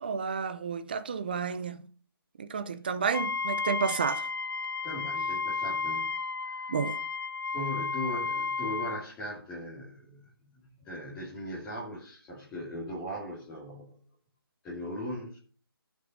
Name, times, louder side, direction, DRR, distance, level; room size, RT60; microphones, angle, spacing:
voice 1, 0.0-1.9 2.4-4.3 6.7-7.0, right 6 dB, 25° right, 0.7 m, -31 dB
Wind instrument woodwind instrument, 3.1-9.0, left 4 dB, 65° left, 0.5 m, -33 dB
voice 2, 4.8-6.1 6.4-6.7 7.5-14.0 14.6-15.4, left 1 dB, 10° left, 2.4 m, -39 dB
13.5 x 6.1 x 5.4 m
figure-of-eight pair, 170°, 13 cm